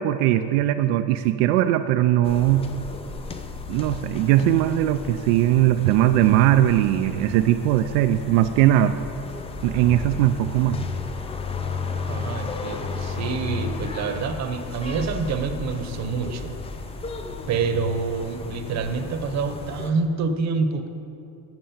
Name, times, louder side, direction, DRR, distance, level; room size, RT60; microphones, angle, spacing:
voice 1, 0.0-2.7 3.7-9.0 9.6-10.8, right 13 dB, 80° right, 8 dB, 0.5 m, -20 dB
sound 1, 2.2-19.9, left 4 dB, 15° left, 0.4 m, -34 dB
voice 2, 12.1-16.5 17.5-20.9, right 4 dB, 40° right, 7 dB, 0.9 m, -27 dB
9.1 x 6.4 x 7.1 m, 2.8 s
cardioid pair, 125°, 43 cm